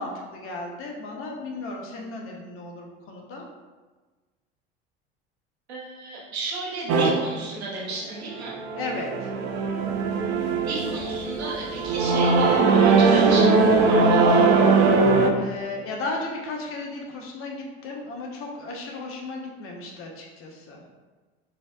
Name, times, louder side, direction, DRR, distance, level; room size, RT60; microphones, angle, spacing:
voice 1, 0.0-3.5 8.8-9.3 15.3-20.8, left 2 dB, 45° left, 0 dB, 0.8 m, -35 dB
voice 2, 5.7-8.6 10.6-14.5, right 2 dB, 85° right, -4 dB, 0.8 m, -33 dB
sound 1, 6.9-7.1 8.2-15.3, right 4 dB, 50° right, 0.5 m, -20 dB
4.2 x 2.7 x 2.4 m, 1.3 s
figure-of-eight pair, 70°, 31 cm